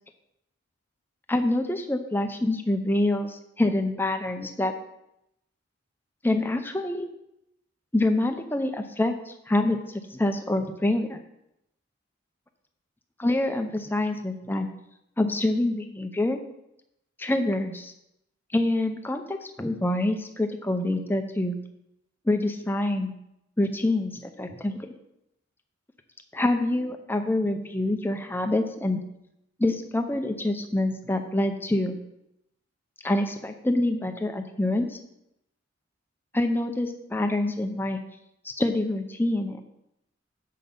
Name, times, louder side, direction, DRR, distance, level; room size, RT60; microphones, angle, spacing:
voice 1, 1.3-4.7 6.2-7.1 7.9-9.8 10.1-11.2 13.2-14.7 15.2-16.4 17.2-17.9 18.5-21.6 22.3-23.1 23.6-24.8 26.3-29.0 29.6-31.9 33.0-35.0 36.3-38.0 38.4-39.6, left 1 dB, 10° left, 6 dB, 0.6 m, -26 dB
7.6 x 6.0 x 5.3 m, 0.82 s
head